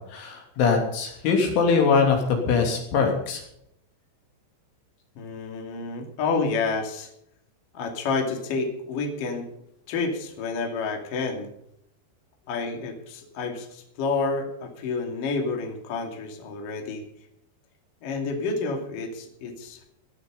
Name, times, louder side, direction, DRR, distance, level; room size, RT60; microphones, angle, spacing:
voice 1, 0.1-3.4, left 5 dB, 75° left, 2 dB, 5.4 m, -22 dB
voice 2, 5.2-7.1 7.7-9.5 9.9-11.5 12.5-17.0 18.0-19.8, left 4 dB, 50° left, 3 dB, 3.7 m, -29 dB
17.0 x 11.5 x 5.5 m, 0.76 s
omnidirectional pair, 5.5 m